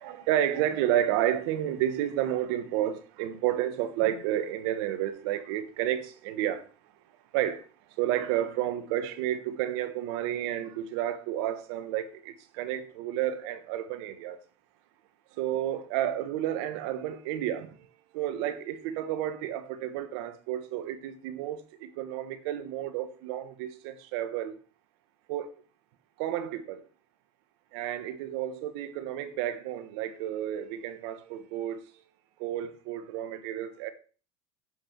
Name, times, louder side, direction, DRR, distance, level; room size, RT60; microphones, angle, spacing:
voice 1, 0.0-6.6 7.3-7.6 8.0-14.4 15.4-17.7 18.1-24.5 25.3-25.5 26.2-26.8 27.7-31.8 32.4-33.9, right 11 dB, 70° right, 1.3 m, -31 dB
11.0 x 7.8 x 4.6 m
hypercardioid pair, 90°, 15 cm